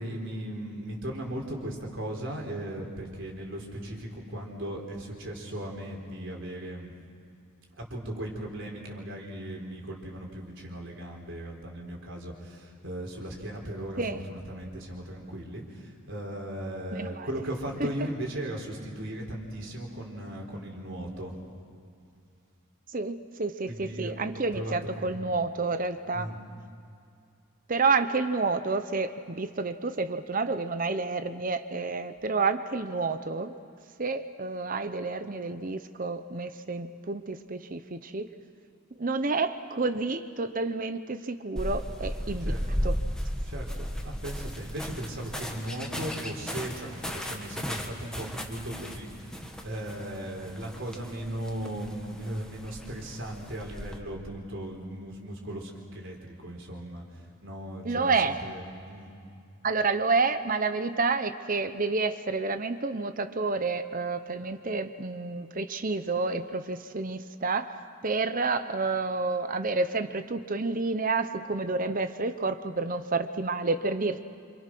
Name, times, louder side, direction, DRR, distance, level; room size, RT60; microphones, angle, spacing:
voice 1, 0.0-6.9 7.8-21.4 23.7-25.2 26.1-26.4 42.4-42.8 43.5-59.1, right 1 dB, 60° right, 0 dB, 4.2 m, -37 dB
voice 2, 16.9-17.3 17.8-17.9 22.9-26.3 27.7-33.5 34.0-38.3 39.0-42.5 42.8-43.0 57.8-58.4 59.6-67.8 68.0-74.2, right 3 dB, 40° right, 10 dB, 0.8 m, -29 dB
sound 1, 41.6-54.0, equal, 5° left, 1.7 m, -36 dB
27.5 x 27.0 x 6.1 m, 2.4 s
head